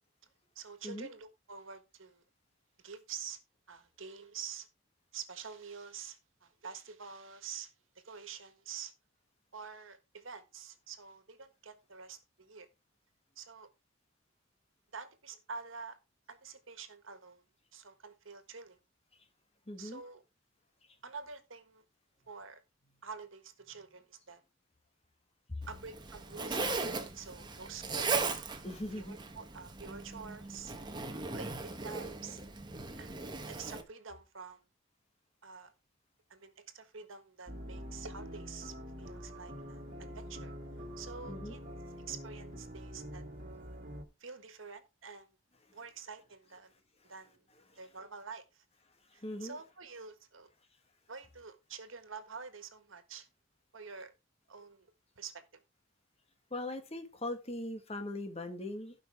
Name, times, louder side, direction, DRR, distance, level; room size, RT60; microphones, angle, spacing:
voice 1, 0.5-2.2 2.8-3.4 3.7-4.7 5.1-8.9 9.5-12.7 13.3-13.7 14.9-16.0 16.3-17.4 17.7-18.8 19.8-20.2 21.0-21.8 22.3-22.6 23.0-24.4 25.7-28.2 28.7-30.7 31.3-32.4 33.0-34.6 35.4-35.7 36.3-40.5 41.0-41.6 42.1-43.2 44.2-45.3 45.7-46.7 47.0-47.5 47.8-48.6 49.1-50.5 51.1-53.3 53.7-54.1 54.5-54.9 55.1-55.6, right 6 dB, 85° right, 1.5 m, -47 dB
voice 2, 19.7-20.0 25.5-25.6 28.6-29.2 41.3-41.6 49.2-49.6 56.5-58.9, left 1 dB, 30° left, 1.5 m, -40 dB
Zipper (clothing), 25.6-33.8, right 4 dB, 20° right, 1.1 m, -38 dB
sound 1, 37.5-44.0, equal, 45° right, 2.0 m, -45 dB
16.0 x 5.5 x 3.5 m
head